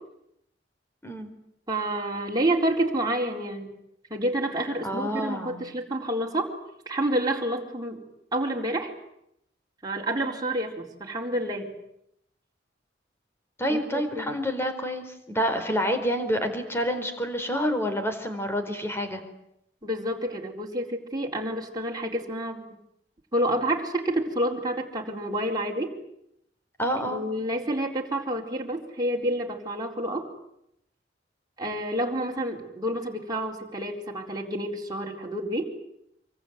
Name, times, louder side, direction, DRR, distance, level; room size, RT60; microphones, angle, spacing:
voice 1, 1.7-3.7 4.1-6.5 6.9-8.0 8.3-8.9 9.8-11.7 13.7-14.3 19.8-22.6 23.3-26.0 27.1-30.2 31.6-35.7, right 1 dB, 20° right, -1 dB, 4.2 m, -29 dB
voice 2, 4.8-5.6 13.6-19.2 26.8-27.2, equal, 15° left, 7 dB, 4.3 m, -28 dB
26.5 x 24.0 x 9.4 m, 0.79 s
head